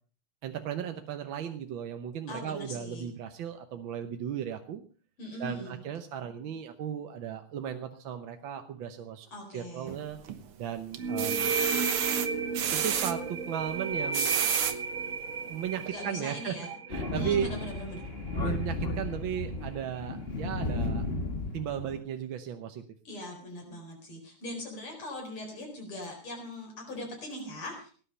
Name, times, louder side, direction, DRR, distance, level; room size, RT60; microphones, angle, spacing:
voice 1, 0.4-4.8 5.4-10.2 10.6-11.5 12.7-14.4 15.5-16.5 16.9-17.5 18.4-21.1 21.5-22.8, right 9 dB, 65° right, 7 dB, 1.7 m, -36 dB
voice 2, 2.3-3.1 5.2-5.8 9.3-10.0 15.8-16.7 17.1-18.1 23.1-27.9, left 1 dB, 80° left, 0 dB, 5.4 m, -40 dB
sound 1, 9.9-10.5 10.9-13.1 13.9-14.8 15.4-15.5 15.8-15.9, right 9 dB, 85° right, 2.1 m, -30 dB
sound 2, 11.0-18.4, right 4 dB, 45° right, 1.3 m, -34 dB
Thunder, 16.9-22.0, left 2 dB, 30° left, 1.5 m, -34 dB
18.0 x 10.0 x 5.5 m, 0.42 s
omnidirectional pair, 2.4 m